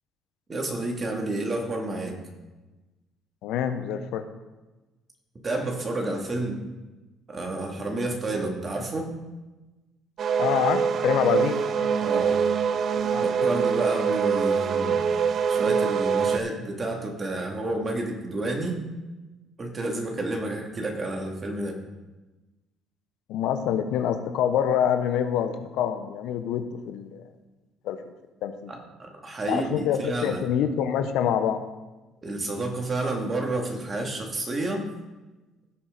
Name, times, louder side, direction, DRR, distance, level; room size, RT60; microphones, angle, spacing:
voice 1, 0.5-2.2 5.4-6.6 7.3-9.1 12.0-12.4 13.2-15.0 15.5-18.8 19.6-21.8 28.7-30.4 32.2-34.8, right 2 dB, 35° right, 1 dB, 2.5 m, -30 dB
voice 2, 3.4-4.2 10.4-12.5 12.9-13.5 23.3-27.2 27.8-28.0 28.4-28.7 29.5-31.6, left 9 dB, 75° left, 8 dB, 0.8 m, -26 dB
sound 1, 10.2-16.4, right 6 dB, 55° right, 0.5 m, -24 dB
16.5 x 5.7 x 4.0 m, 1.1 s
supercardioid pair, 75°, 0 cm